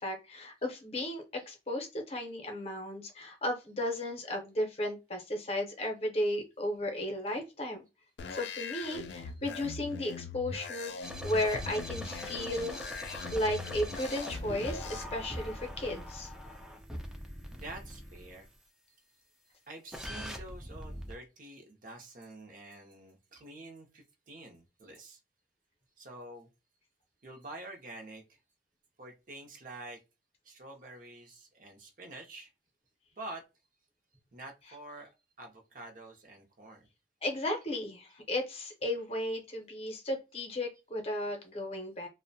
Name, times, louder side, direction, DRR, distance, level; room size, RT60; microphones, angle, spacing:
voice 1, 0.0-7.8 8.3-12.8 13.3-16.3 37.2-42.1, left 1 dB, 35° left, 2 dB, 0.6 m, -34 dB
sound 1, 8.2-15.0, left 4 dB, 70° left, 0.3 m, -41 dB
sound 2, 11.0-18.4 19.9-21.1, equal, 5° right, 0.4 m, -42 dB
voice 2, 17.5-18.5 19.7-25.2 26.0-26.5 27.2-28.4 29.0-30.0 30.4-32.5 33.2-33.4 34.3-35.1 35.4-36.9, right 2 dB, 45° right, 3 dB, 0.6 m, -47 dB
2.5 x 2.1 x 2.6 m, 0.26 s
head